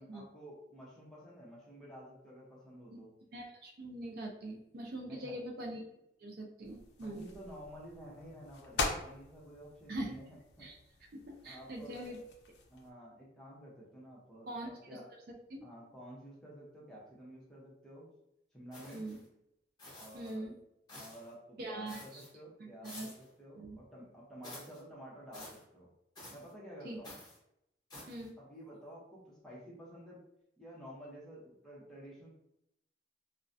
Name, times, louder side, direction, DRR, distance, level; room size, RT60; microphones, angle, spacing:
voice 1, 0.0-3.1 5.0-5.4 7.0-10.7 11.4-12.1 12.7-15.1 15.6-18.1 18.5-19.0 19.9-20.5 20.9-23.1 23.4-25.9 26.3-27.2 28.4-30.2 30.6-32.3, equal, 5° left, -6 dB, 0.7 m, -51 dB
voice 2, 3.3-5.9 6.2-7.3 9.9-10.2 10.6-10.8 11.1-12.2 14.5-14.7 15.5-15.6 18.9-19.2 20.1-20.5 21.6-22.2 22.6-23.1 23.6-23.8 26.8-27.0 28.1-28.3, right 1 dB, 55° right, 0 dB, 0.4 m, -42 dB
sound 1, 6.6-12.9, left 3 dB, 65° left, 0.4 m, -43 dB
sound 2, 18.7-19.2 19.8-20.3 20.9-21.3 21.9-22.3 22.8-23.3 24.4-24.8 25.3-25.6 26.2-26.5 27.0-27.4 27.9-28.3, left 1 dB, 20° left, 1.0 m, -51 dB
2.3 x 2.1 x 2.5 m, 0.81 s
head